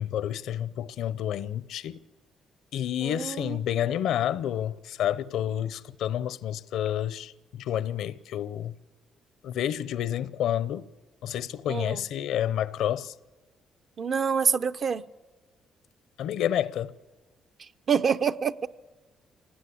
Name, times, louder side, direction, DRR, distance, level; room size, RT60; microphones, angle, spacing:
voice 1, 0.0-2.0 2.7-8.7 9.4-10.9 11.2-13.1 16.2-16.9, left 10 dB, 80° left, 0.7 m, -29 dB
voice 2, 3.0-3.6 11.7-12.0 14.0-15.0 17.9-18.7, right 6 dB, 50° right, 0.8 m, -26 dB
25.0 x 19.0 x 8.5 m
cardioid pair, 90°, 0 cm